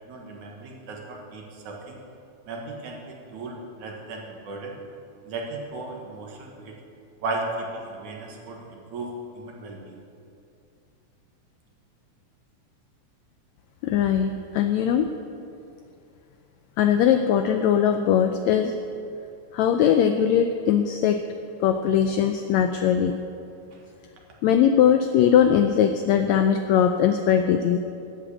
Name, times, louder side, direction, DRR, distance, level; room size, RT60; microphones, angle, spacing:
voice 1, 0.1-2.0 2.5-4.8 5.2-6.7 7.2-10.0 23.7-23.8, right 2 dB, 65° right, 0 dB, 2.9 m, -36 dB
voice 2, 13.8-15.1 16.8-18.8 19.5-21.2 21.6-23.2 24.4-27.8, left 8 dB, 85° left, 7 dB, 1.6 m, -20 dB
11.5 x 8.0 x 8.4 m, 2.6 s
omnidirectional pair, 3.8 m